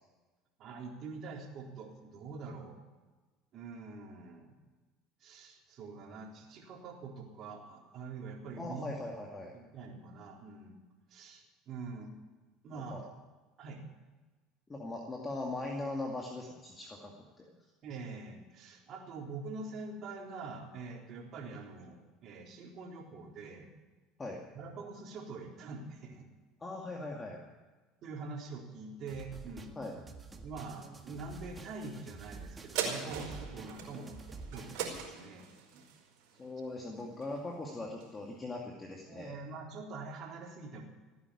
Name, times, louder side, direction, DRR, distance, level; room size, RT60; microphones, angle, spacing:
voice 1, 0.6-2.8 3.5-4.5 5.2-8.8 9.5-10.8 11.1-12.1 12.6-13.0 13.6-13.8 17.8-23.7 24.5-26.3 28.0-29.8 30.4-34.2 34.5-35.5 35.7-35.8 39.1-40.8, right 4 dB, 50° right, 0 dB, 3.8 m, -45 dB
voice 2, 8.6-9.5 12.7-13.0 14.7-17.4 24.2-24.4 26.6-27.4 29.8-30.0 36.4-39.4, left 2 dB, 20° left, 0 dB, 2.3 m, -40 dB
sound 1, 29.1-35.1, right 4 dB, 20° right, 1.7 m, -49 dB
sound 2, 32.7-37.5 38.0-38.1, right 7 dB, 70° right, 4.7 m, -40 dB
16.5 x 9.6 x 8.6 m, 1.3 s
supercardioid pair, 100°, 0 cm